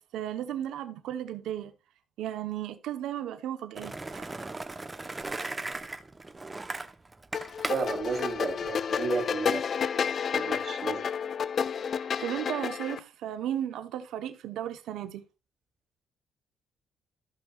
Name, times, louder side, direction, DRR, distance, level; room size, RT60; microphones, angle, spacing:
voice 1, 0.0-1.7 2.2-4.4 12.0-15.2, right 11 dB, 85° right, 1.0 m, -35 dB
Skateboard, 3.8-9.2, right 2 dB, 20° right, 0.9 m, -38 dB
sound 1, 7.3-13.0, left 7 dB, 50° left, 0.3 m, -30 dB
voice 2, 7.6-9.6 10.0-11.0, right 5 dB, 55° right, 3.2 m, -33 dB
15.0 x 5.7 x 2.4 m
cardioid pair, 90°, 0 cm